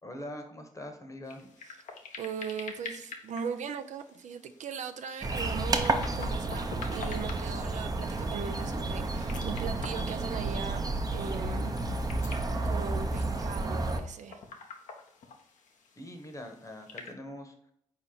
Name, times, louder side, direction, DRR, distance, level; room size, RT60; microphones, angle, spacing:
voice 1, 0.0-1.5 16.0-17.7, left 1 dB, 25° left, 4 dB, 1.0 m, -43 dB
sound 1, 1.2-17.1, left 4 dB, 70° left, 0.7 m, -48 dB
voice 2, 2.2-11.8 12.6-14.4, right 6 dB, 65° right, 8 dB, 0.4 m, -39 dB
sound 2, 5.2-14.0, right 2 dB, 30° right, 0.6 m, -31 dB
4.2 x 2.9 x 3.8 m, 0.71 s
supercardioid pair, 55°, 13 cm